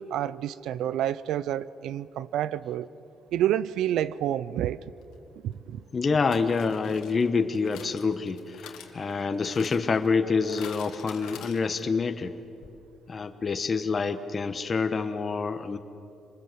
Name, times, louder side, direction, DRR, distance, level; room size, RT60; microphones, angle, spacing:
voice 1, 0.0-2.9 3.3-4.8 5.4-5.8, right 11 dB, 85° right, 0.5 m, -29 dB
sound 1, 5.0-5.1 6.3-12.1 12.3-12.4 12.6-12.7, left 8 dB, 90° left, 1.8 m, -47 dB
voice 2, 5.9-12.3 13.1-15.8, left 4 dB, 35° left, 1.1 m, -27 dB
26.5 x 20.5 x 7.7 m
cardioid pair, 90°, 0 cm